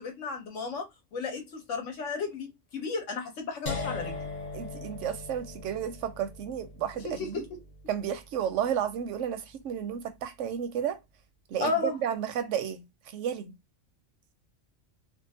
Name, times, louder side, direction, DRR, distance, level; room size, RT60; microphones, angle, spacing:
voice 1, 0.0-4.2 7.0-7.4 11.6-11.9, left 4 dB, 85° left, 1.2 m, -33 dB
sound 1, 3.7-9.6, left 3 dB, 45° left, 0.7 m, -40 dB
voice 2, 4.5-7.4 7.9-11.0 11.5-13.6, right 9 dB, 90° right, 0.9 m, -32 dB
2.6 x 2.5 x 2.7 m
omnidirectional pair, 1.2 m